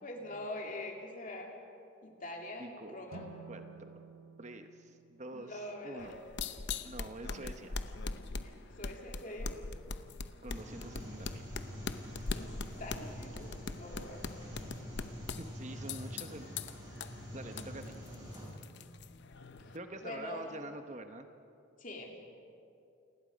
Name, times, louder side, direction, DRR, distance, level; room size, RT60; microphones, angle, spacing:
voice 1, 0.0-1.5 2.0-3.2 5.3-6.2 8.4-9.5 10.6-10.8 12.3-13.5 13.8-14.3 17.9-18.0 19.6-19.8 20.0-20.5 21.8-22.2, left 1 dB, 40° left, 1 dB, 2.6 m, -44 dB
voice 2, 2.6-3.1 3.5-3.9 4.4-6.2 6.8-7.8 10.4-11.4 15.4-16.5 17.3-18.0 19.7-21.3, right 2 dB, 35° right, 7 dB, 1.0 m, -46 dB
sound 1, 3.1-6.3, right 4 dB, 90° right, 1.3 m, -53 dB
sound 2, 6.0-19.8, left 4 dB, 55° left, 0.8 m, -42 dB
sound 3, 10.5-18.5, equal, 20° right, 6.1 m, -46 dB
28.5 x 20.0 x 5.2 m, 2.6 s
head